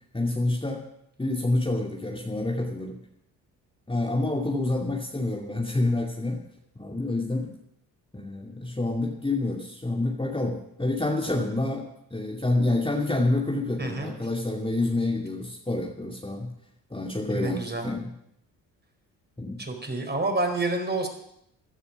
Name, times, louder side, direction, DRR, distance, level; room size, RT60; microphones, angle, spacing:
voice 1, 0.1-0.8 1.2-3.0 3.9-6.4 6.8-7.5 8.1-11.8 12.1-16.5 16.9-18.1 19.4-19.6, left 2 dB, 10° left, -1 dB, 2.6 m, -27 dB
voice 2, 13.8-14.1 17.3-17.9 19.6-21.1, right 2 dB, 20° right, 4 dB, 4.4 m, -28 dB
16.5 x 11.5 x 6.0 m, 0.76 s
hypercardioid pair, 50°, 49 cm